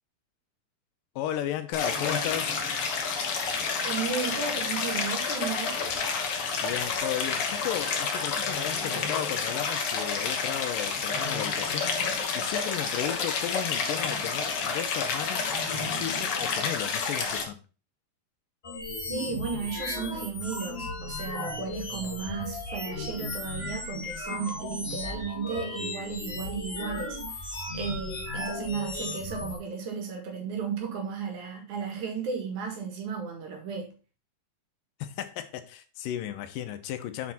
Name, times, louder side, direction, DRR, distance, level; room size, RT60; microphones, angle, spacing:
voice 1, 1.2-2.5 6.6-11.9 12.4-17.6 35.0-37.3, left 11 dB, 85° left, 2.4 m, -34 dB
Stream, 1.7-17.4, left 5 dB, 60° left, 1.7 m, -29 dB
voice 2, 3.8-5.8 19.1-33.9, right 6 dB, 65° right, 3.0 m, -34 dB
sound 1, 18.6-29.6, left 2 dB, 35° left, 0.9 m, -35 dB
8.4 x 4.6 x 4.2 m
omnidirectional pair, 3.9 m